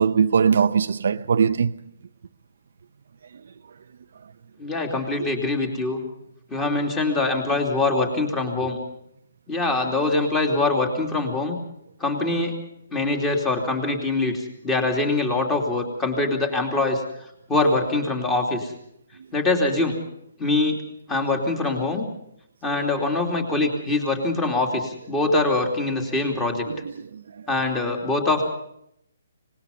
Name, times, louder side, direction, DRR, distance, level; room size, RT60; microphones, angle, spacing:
voice 1, 0.0-1.8 22.7-23.0 27.1-27.2, right 6 dB, 60° right, 0.7 m, -20 dB
voice 2, 4.6-6.0 6.5-8.8 9.5-11.6 12.0-12.5 12.9-17.0 17.5-18.7 19.3-20.0 20.4-20.8 21.1-22.0 22.6-26.7 27.5-28.4, left 2 dB, 10° left, 2.9 m, -23 dB
25.0 x 20.5 x 5.4 m
hypercardioid pair, 170°, 0 cm